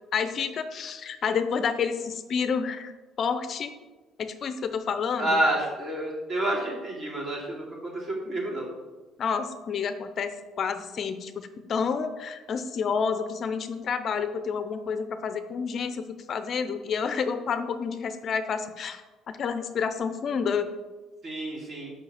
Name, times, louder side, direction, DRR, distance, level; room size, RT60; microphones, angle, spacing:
voice 1, 0.1-2.9 3.2-3.7 4.2-5.4 9.2-19.0 19.3-20.7, left 6 dB, 50° left, 9 dB, 0.6 m, -29 dB
voice 2, 5.2-8.7 21.2-21.9, right 1 dB, 40° right, -3 dB, 2.7 m, -29 dB
5.8 x 5.7 x 5.7 m, 1.2 s
cardioid pair, 100°, 0 cm